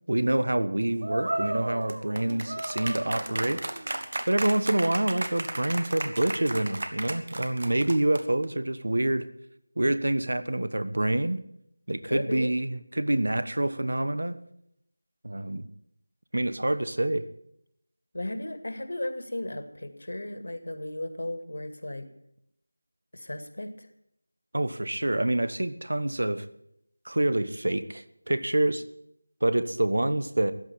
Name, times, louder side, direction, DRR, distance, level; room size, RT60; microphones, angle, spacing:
voice 1, 0.1-3.6 4.3-9.3 9.8-11.4 11.9-14.4 15.2-15.7 16.3-17.3 24.5-26.4 27.0-28.8 29.4-30.5, right 1 dB, 65° right, 14 dB, 1.1 m, -27 dB
sound 1, 1.0-8.4, right 1 dB, 45° right, 1.4 m, -33 dB
voice 2, 12.0-12.6 18.1-22.1 23.1-23.9, left 1 dB, 60° left, 8 dB, 2.1 m, -35 dB
14.5 x 9.8 x 8.6 m, 0.76 s
figure-of-eight pair, 180°, 0 cm